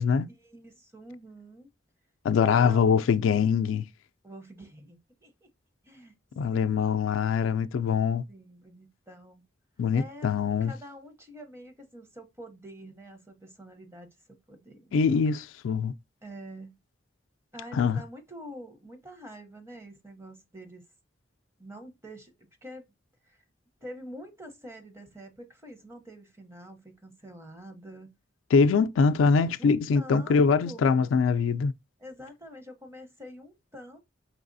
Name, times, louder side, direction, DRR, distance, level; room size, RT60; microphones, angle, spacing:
voice 1, 0.3-1.7 2.4-3.3 4.2-5.5 5.8-6.1 6.5-7.0 8.3-9.4 9.9-10.3 10.6-15.0 16.2-16.8 17.5-20.8 21.6-22.9 23.2-23.4 23.8-28.2 29.6-31.2 32.0-34.0, equal, 15° right, 0.7 m, -46 dB
voice 2, 2.2-3.8 6.4-8.2 9.8-10.7 14.9-15.9 17.7-18.0 28.5-31.7, left 5 dB, 85° left, 0.3 m, -23 dB
4.7 x 3.3 x 2.6 m
head